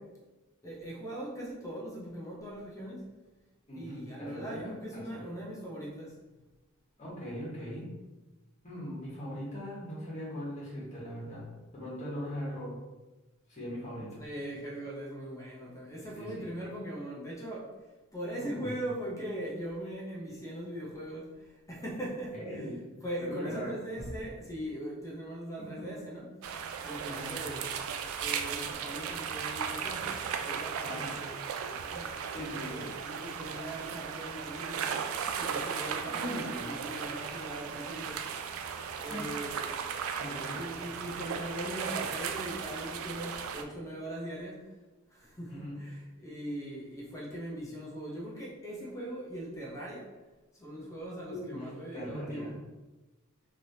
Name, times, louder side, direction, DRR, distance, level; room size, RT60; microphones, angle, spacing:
voice 1, 0.6-3.1 3.7-6.2 14.2-17.7 18.1-22.7 23.0-26.3 26.8-27.6 28.2-31.6 31.8-32.1 32.6-35.0 35.4-38.3 39.0-39.7 40.5-44.7 45.1-50.1 50.5-52.6, right 1 dB, 15° left, -4 dB, 0.6 m, -40 dB
voice 2, 3.7-4.7 5.1-5.2 7.0-7.8 8.6-11.4 11.7-12.8 13.5-14.1 16.1-16.5 18.4-18.7 22.3-22.8 23.2-23.7 27.1-27.3 30.8-31.1 32.3-32.8 36.1-36.8 39.1-39.3 40.2-40.6 45.5-45.8 51.3-52.5, equal, 35° left, -7 dB, 1.4 m, -40 dB
sound 1, 26.4-43.6, right 7 dB, 75° right, 0.3 m, -36 dB
3.2 x 2.8 x 2.7 m, 1.1 s
head